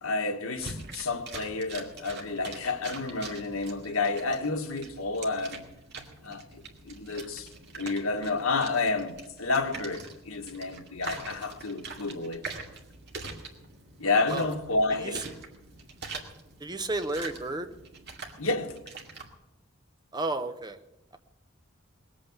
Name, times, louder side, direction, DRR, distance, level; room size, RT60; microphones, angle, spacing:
voice 1, 0.0-5.6 6.2-7.5 7.7-12.4 14.0-15.3 18.4-18.8, left 3 dB, 90° left, 1.5 m, -30 dB
sound 1, 0.5-19.3, right 3 dB, 50° right, 2.3 m, -44 dB
voice 2, 16.6-17.7 20.1-20.8, right 2 dB, 20° right, 0.8 m, -31 dB
20.5 x 8.7 x 7.3 m
head